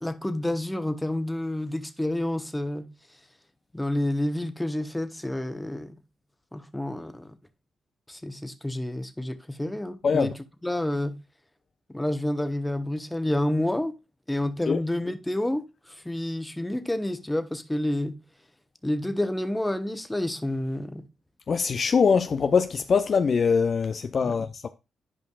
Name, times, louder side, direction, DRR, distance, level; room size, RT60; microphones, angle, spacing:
voice 1, 0.0-2.9 3.7-5.9 6.5-7.4 8.1-10.3 10.6-11.2 11.9-14.0 14.3-18.2 18.8-21.1 24.2-24.3, left 1 dB, 10° left, 1.0 m, -29 dB
voice 2, 21.5-24.7, left 5 dB, 50° left, 0.4 m, -23 dB
11.0 x 5.1 x 2.4 m
hypercardioid pair, 50°, 0 cm